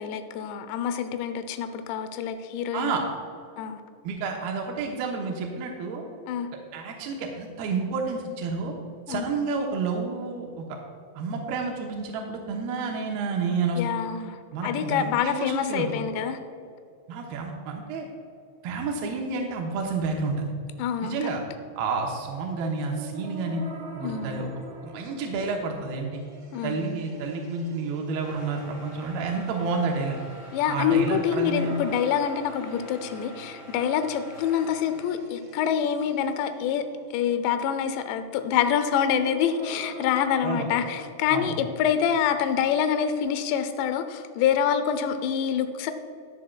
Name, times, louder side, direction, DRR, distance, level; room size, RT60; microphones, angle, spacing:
voice 1, 0.0-3.0 3.6-3.8 6.3-6.5 9.1-9.3 13.8-16.4 20.8-21.2 24.0-24.5 26.5-27.0 30.5-36.9 37.1-45.9, left 8 dB, 80° left, 9 dB, 2.6 m, -26 dB
voice 2, 4.0-6.0 6.7-8.7 9.1-10.6 11.2-13.8 14.5-15.9 17.1-18.1 18.6-20.5 21.0-21.4 21.8-23.6 23.9-24.5 24.8-26.2 26.6-30.2 30.7-31.8 40.4-40.7 41.3-41.6, right 4 dB, 85° right, 0 dB, 2.2 m, -30 dB
sound 1, 22.9-41.0, right 2 dB, 65° right, 3.3 m, -44 dB
sound 2, 28.2-35.2, right 1 dB, 40° left, 1.6 m, -47 dB
14.0 x 9.8 x 2.3 m, 2.5 s
omnidirectional pair, 5.6 m